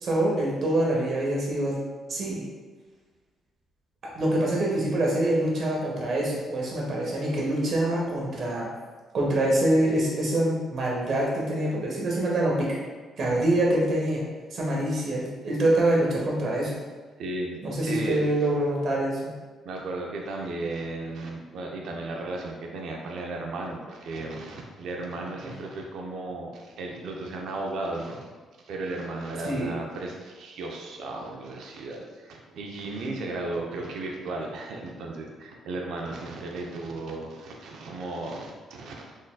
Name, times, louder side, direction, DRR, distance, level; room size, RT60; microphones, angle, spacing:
voice 1, 0.0-1.8 2.1-2.4 4.1-8.7 9.1-12.8 13.2-14.2 14.5-16.7 17.6-19.3 25.4-25.5 29.4-29.7, right 1 dB, 55° right, -3 dB, 1.2 m, -25 dB
voice 2, 17.2-18.3 19.6-28.2 28.6-39.2, right 2 dB, 75° right, 1 dB, 0.6 m, -35 dB
4.0 x 3.7 x 2.3 m, 1.4 s
cardioid pair, 90°, 0 cm